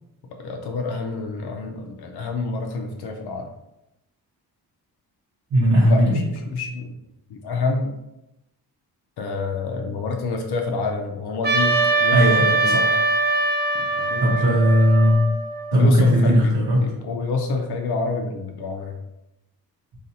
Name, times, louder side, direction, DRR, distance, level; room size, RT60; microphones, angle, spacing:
voice 1, 0.3-3.5 5.8-6.9 7.3-7.9 9.2-12.8 13.9-14.4 15.7-19.0, left 3 dB, 75° left, 3 dB, 0.5 m, -28 dB
voice 2, 5.5-6.2 12.1-13.0 14.2-15.2 15.7-16.9, equal, 55° right, -5 dB, 0.8 m, -17 dB
Trumpet, 11.4-15.9, right 3 dB, 30° right, 0.4 m, -22 dB
4.0 x 2.4 x 2.7 m, 0.88 s
wide cardioid pair, 175°, 39 cm